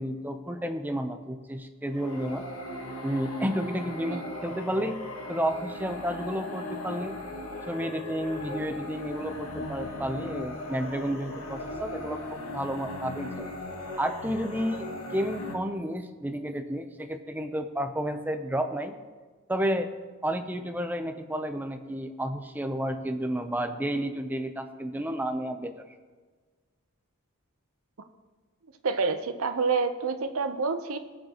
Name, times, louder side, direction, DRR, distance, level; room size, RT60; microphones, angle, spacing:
voice 1, 0.0-2.4 3.0-5.0 5.3-7.2 7.7-13.5 14.0-14.9 15.1-18.9 19.5-19.9 20.2-25.7, equal, 10° right, 6 dB, 0.6 m, -31 dB
sound 1, 1.9-15.5, left 1 dB, 85° left, 1.5 m, -38 dB
voice 2, 28.8-31.0, right 4 dB, 80° right, 8 dB, 0.8 m, -28 dB
19.5 x 6.6 x 3.0 m, 1.4 s
head